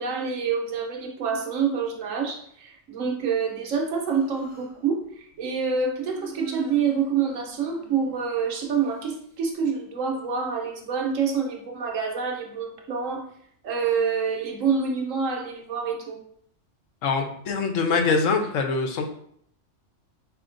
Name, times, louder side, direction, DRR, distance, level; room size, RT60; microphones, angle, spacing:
voice 1, 0.0-13.2 13.6-16.2, right 6 dB, 90° right, 2 dB, 1.2 m, -27 dB
Human voice, 3.8-4.8 5.9-8.7, right 4 dB, 35° right, 1.2 m, -44 dB
voice 2, 17.0-19.1, left 4 dB, 85° left, 4 dB, 1.1 m, -24 dB
4.9 x 2.8 x 2.5 m, 0.66 s
omnidirectional pair, 1.3 m